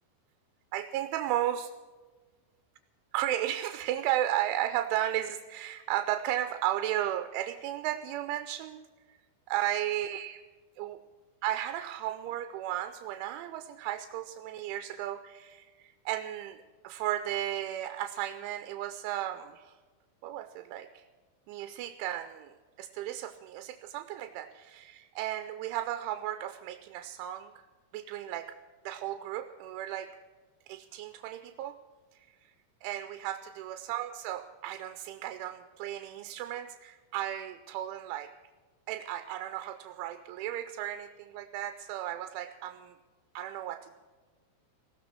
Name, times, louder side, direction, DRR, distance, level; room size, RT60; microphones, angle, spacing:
voice 1, 0.7-1.7 3.1-8.8 9.1-9.2 9.5-10.4 10.8-11.0 11.4-19.7 20.2-21.0 21.5-27.5 27.9-28.5 28.9-30.1 30.7-31.8 32.1-32.5 32.8-38.3 38.9-42.9 43.3-44.0, right 12 dB, 80° right, 10 dB, 2.9 m, -34 dB
19.0 x 17.0 x 4.5 m, 1.3 s
omnidirectional pair, 5.8 m